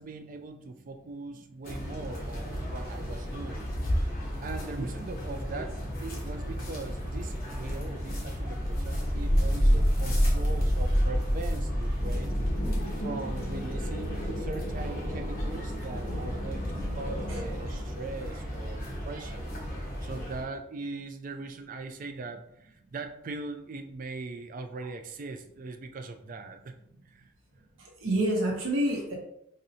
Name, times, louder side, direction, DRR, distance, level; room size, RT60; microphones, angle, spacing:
voice 1, 0.0-3.7 4.4-12.4 13.0-19.5 20.0-26.7 27.1-27.3, right 3 dB, 40° right, 6 dB, 0.3 m, -40 dB
sound 1, 1.6-20.4, equal, 45° left, 1.0 m, -30 dB
sound 2, 12.0-18.1, equal, 85° left, 0.7 m, -40 dB
voice 2, 27.8-29.1, right 1 dB, 80° right, -2 dB, 0.8 m, -28 dB
4.1 x 2.6 x 2.7 m, 0.78 s
head